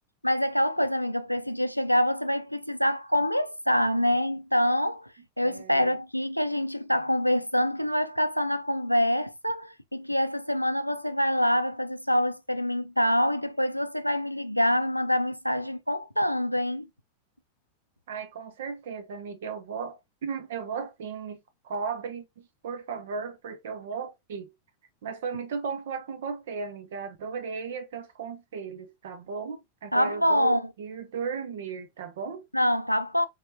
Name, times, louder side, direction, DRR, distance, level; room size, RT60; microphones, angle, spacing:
voice 1, 0.2-16.9 29.9-30.6 32.5-33.3, equal, 90° left, 0.4 m, -26 dB
voice 2, 5.4-5.9 18.1-24.5 25.0-32.5, right 5 dB, 60° right, 0.7 m, -36 dB
4.5 x 4.1 x 2.8 m
figure-of-eight pair, 90°, 0 cm